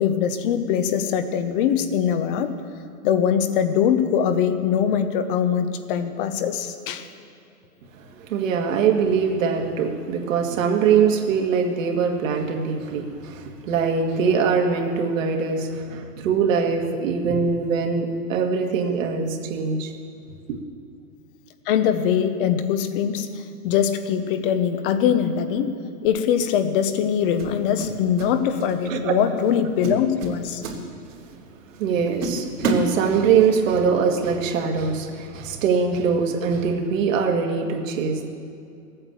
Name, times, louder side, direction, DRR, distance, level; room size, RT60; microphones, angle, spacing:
voice 1, 0.0-2.6 3.0-7.1 21.7-25.7 26.0-30.6, left 8 dB, 35° left, 10 dB, 1.0 m, -22 dB
voice 2, 7.9-19.9 28.9-29.1 31.8-38.3, right 6 dB, 55° right, 3 dB, 2.1 m, -22 dB
sound 1, 26.0-26.3 27.4-28.3 28.6-28.9 29.4-29.5 29.8-31.3 31.7-31.8 32.2-33.5, right 2 dB, 80° right, 3.2 m, -28 dB
15.5 x 8.9 x 7.3 m, 2.4 s
hypercardioid pair, 145°, 46 cm